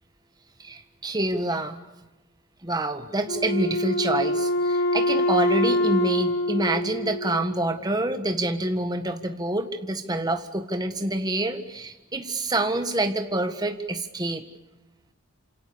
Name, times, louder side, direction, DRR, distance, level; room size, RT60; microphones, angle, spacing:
voice 1, 0.6-1.8 2.6-14.4, right 1 dB, 20° right, 7 dB, 1.6 m, -27 dB
Wind instrument woodwind instrument, 3.3-7.8, left 1 dB, 55° left, 3.1 m, -25 dB
29.0 x 27.5 x 7.1 m, 1.0 s
head